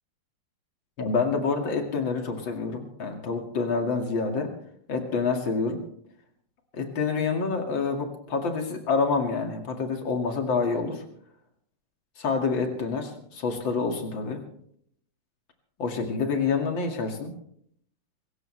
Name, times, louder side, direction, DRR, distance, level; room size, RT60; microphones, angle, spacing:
voice 1, 1.0-4.5 4.9-5.8 6.7-11.0 12.2-14.4 15.8-17.4, left 4 dB, 75° left, 3 dB, 3.0 m, -27 dB
25.0 x 15.0 x 3.3 m, 0.66 s
omnidirectional pair, 2.1 m